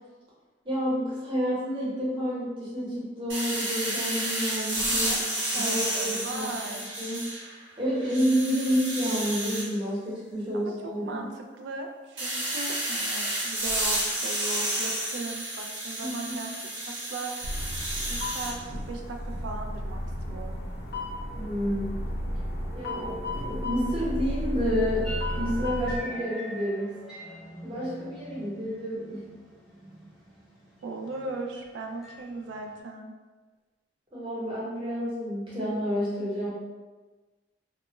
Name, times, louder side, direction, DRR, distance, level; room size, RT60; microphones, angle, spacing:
voice 1, 0.6-5.1 5.5-6.6 7.0-7.3 7.8-11.2 16.0-16.4 21.3-22.0 22.7-25.1 25.3-26.9 27.6-29.3 34.1-36.5, equal, 25° right, -8 dB, 0.8 m, -29 dB
sound 1, 3.3-7.6 8.0-9.7 12.2-18.5, right 1 dB, 85° right, 1.1 m, -31 dB
voice 2, 5.5-6.9 10.5-10.7 11.0-17.3 18.1-20.0 20.3-20.5 30.8-33.1, right 3 dB, 70° right, 3 dB, 0.3 m, -38 dB
sound 2, 17.4-26.0, left 1 dB, 55° left, 0.4 m, -33 dB
sound 3, 25.0-32.8, equal, ahead, 0.5 m, -43 dB
2.1 x 2.1 x 3.0 m, 1.3 s
head